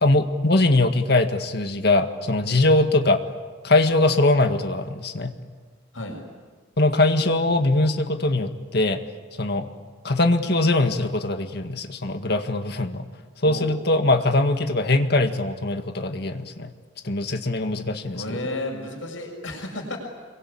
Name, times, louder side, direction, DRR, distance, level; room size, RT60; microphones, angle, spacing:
voice 1, 0.0-3.2 3.6-5.3 6.8-9.0 9.4-9.7 10.0-13.0 13.4-16.7 17.0-18.2, left 2 dB, 55° left, 6 dB, 1.9 m, -21 dB
voice 2, 18.1-20.0, left 1 dB, 80° left, 1 dB, 6.9 m, -32 dB
27.0 x 23.5 x 8.7 m, 1.5 s
head